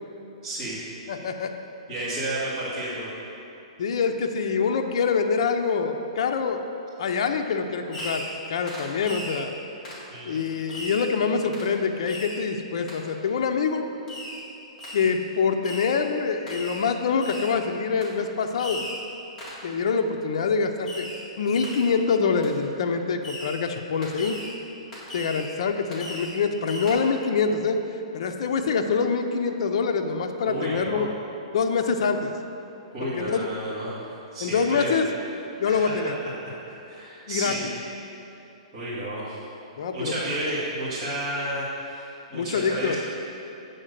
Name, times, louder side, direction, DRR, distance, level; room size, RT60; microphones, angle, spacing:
voice 1, 0.4-0.8 1.9-3.1 10.1-10.4 30.4-31.0 32.9-34.9 35.6-36.1 36.4-37.6 38.7-39.4 39.9-42.9, right 1 dB, 25° right, -13 dB, 1.8 m, -32 dB
voice 2, 1.1-1.5 3.8-6.6 7.0-9.5 10.3-13.9 14.9-18.9 19.6-21.1 21.4-24.4 25.1-27.8 28.1-31.1 31.5-32.3 33.2-33.5 34.4-35.1 35.6-36.1 37.3-37.6 39.8-40.1 42.3-42.9, left 5 dB, 60° left, 5 dB, 0.5 m, -25 dB
Fireworks, 7.9-8.4 8.7-9.4 9.8-10.1 10.7-11.1 11.5-11.7 12.1-12.4 12.9-13.0 14.1-14.4 14.8-15.2 15.6-16.0 16.5-16.8 17.2-17.6 18.0-18.2 18.6-19.0 19.4-19.7 20.8-21.2 21.5-21.9 22.4-22.5 23.2-23.6 24.0-24.5 24.9-25.5 25.9-26.4 26.7-26.9, left 1 dB, 15° left, 1.8 m, -37 dB
7.8 x 3.8 x 6.5 m, 2.8 s
hypercardioid pair, 165°, 3 cm